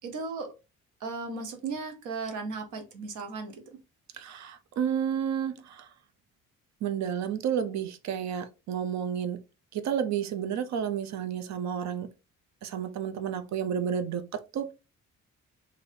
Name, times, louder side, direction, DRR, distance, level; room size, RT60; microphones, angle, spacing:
voice 1, 0.0-0.5 1.0-3.8, right 4 dB, 85° right, 0.9 m, -36 dB
voice 2, 4.1-5.9 6.8-9.4 9.7-12.1 12.6-14.7, right 8 dB, 65° right, 0.6 m, -31 dB
3.3 x 2.6 x 2.6 m
cardioid pair, 90°, 30 cm